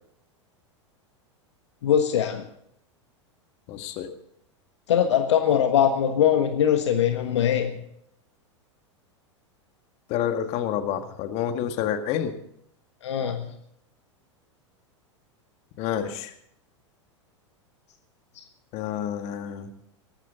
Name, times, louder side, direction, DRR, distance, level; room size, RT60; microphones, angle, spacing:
voice 1, 1.8-2.5 4.9-7.7 13.0-13.5 18.4-18.5, left 9 dB, 65° left, 6 dB, 1.5 m, -22 dB
voice 2, 3.7-4.1 10.1-12.3 15.8-16.3 18.7-19.7, left 9 dB, 45° left, 7 dB, 2.0 m, -28 dB
18.5 x 14.5 x 4.0 m, 0.73 s
figure-of-eight pair, 90°, 16 cm